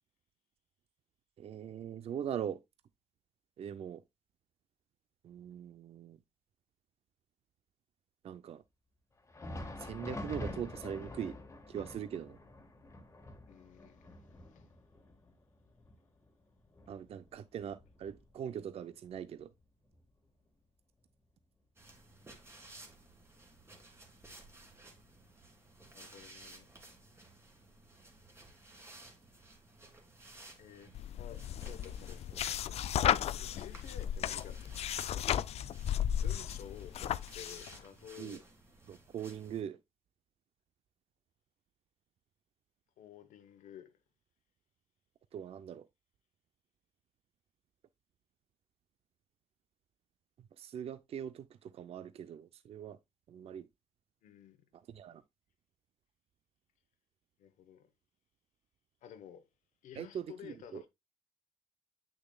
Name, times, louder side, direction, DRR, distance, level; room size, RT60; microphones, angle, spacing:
voice 1, 1.4-2.6 3.6-4.0 5.2-6.2 8.2-8.6 9.8-11.4 11.7-12.4 16.9-19.5 38.2-38.4 38.9-39.8 45.3-45.9 50.6-53.0 53.3-53.7 54.7-55.2 60.0-60.8, right 9 dB, 50° right, 0.4 m, -41 dB
Thunder, 9.2-18.6 19.0-19.1 19.8-20.0 21.0-21.1, left 1 dB, 20° left, 1.5 m, -47 dB
voice 2, 13.4-14.7 25.9-26.7 30.6-33.1 33.4-34.7 36.2-38.4 43.0-43.9 54.2-54.6 57.4-57.9 59.0-59.5 59.8-60.9, left 9 dB, 80° left, 1.0 m, -52 dB
sound 1, 21.8-39.6, right 2 dB, 20° right, 1.9 m, -56 dB
sound 2, 30.9-37.8, left 10 dB, 55° left, 0.4 m, -34 dB
8.1 x 6.4 x 2.2 m
cardioid pair, 115°, 13 cm